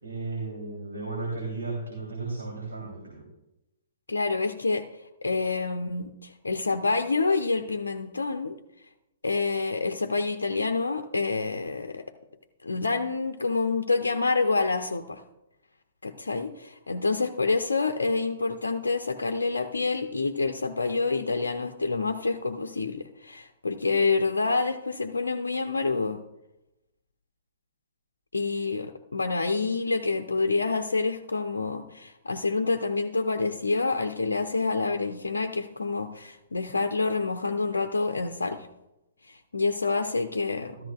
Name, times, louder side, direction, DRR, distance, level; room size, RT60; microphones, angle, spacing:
voice 1, 0.0-3.3 40.8-40.9, right 3 dB, 75° right, -3 dB, 3.2 m, -34 dB
voice 2, 4.1-4.9 5.2-8.6 9.2-12.0 12.6-15.2 16.0-26.2 28.3-38.7 39.3-40.8, left 3 dB, 75° left, 6 dB, 0.7 m, -27 dB
13.5 x 13.0 x 2.4 m, 0.91 s
figure-of-eight pair, 115°, 0 cm